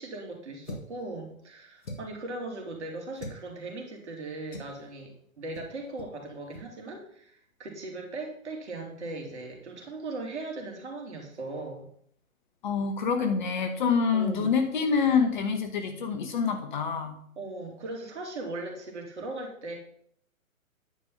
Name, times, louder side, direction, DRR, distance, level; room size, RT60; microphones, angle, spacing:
voice 1, 0.0-11.9 14.1-14.6 17.4-19.7, right 2 dB, 55° right, 1 dB, 2.8 m, -38 dB
sound 1, 0.6-1.0 1.8-2.2 3.2-3.4 4.5-4.8 5.5-5.7 6.0-6.1 6.5-6.7, left 1 dB, 65° left, 1.8 m, -41 dB
voice 2, 12.6-17.2, left 5 dB, 35° left, 6 dB, 1.0 m, -26 dB
9.5 x 5.3 x 5.5 m, 0.64 s
figure-of-eight pair, 130°, 42 cm